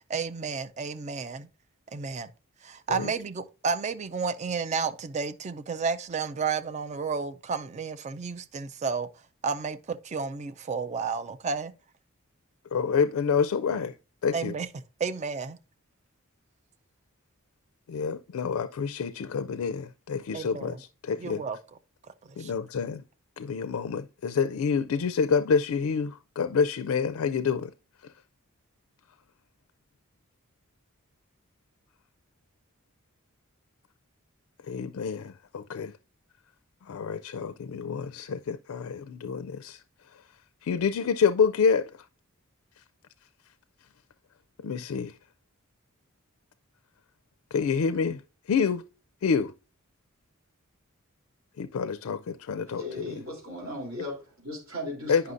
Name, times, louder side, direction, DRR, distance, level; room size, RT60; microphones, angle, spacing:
voice 1, 0.0-1.5 1.9-2.3 2.6-9.1 9.4-11.7 14.3-14.7 15.0-15.6 20.3-20.8 21.2-21.6 22.2-22.5, right 5 dB, 35° right, 0.4 m, -32 dB
voice 2, 12.7-13.9 14.2-14.5 17.9-21.4 22.4-23.0 23.4-27.7 34.7-35.9 36.9-39.8 40.6-41.9 44.6-45.1 47.5-48.2 48.5-48.8 49.2-49.5 51.6-53.1 55.1-55.2, left 6 dB, 80° left, 0.4 m, -27 dB
voice 3, 52.7-55.3, left 1 dB, 70° right, 3.3 m, -37 dB
9.5 x 5.7 x 2.5 m
head